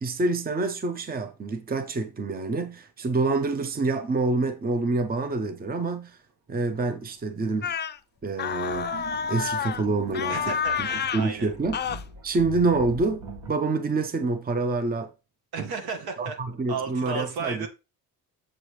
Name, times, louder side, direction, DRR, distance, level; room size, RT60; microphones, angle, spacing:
voice 1, 0.0-6.2 6.5-7.7 8.2-10.9 11.1-11.8 12.2-15.1 16.2-17.7, right 3 dB, 25° right, 0.8 m, -27 dB
sound 1, 7.0-7.1 8.4-13.5, right 2 dB, 60° right, 1.7 m, -42 dB
sound 2, 7.6-8.0 8.4-9.8 10.1-11.3 11.7-12.0, left 7 dB, 30° left, 0.4 m, -29 dB
voice 2, 10.3-11.5 15.5-16.4 16.7-17.7, right 5 dB, 75° right, 1.5 m, -33 dB
7.4 x 4.6 x 3.2 m
cardioid pair, 100°, 37 cm